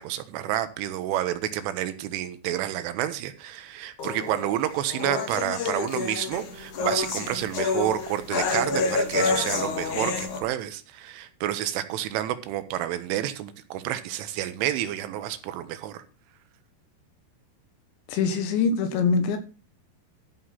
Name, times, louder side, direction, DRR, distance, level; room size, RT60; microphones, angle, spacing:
voice 1, 0.0-16.0, right 12 dB, 80° right, 3.2 m, -29 dB
sound 1, 4.0-10.4, left 4 dB, 55° left, 2.2 m, -28 dB
voice 2, 18.1-19.4, left 5 dB, 75° left, 3.1 m, -23 dB
13.5 x 6.4 x 5.7 m
omnidirectional pair, 5.9 m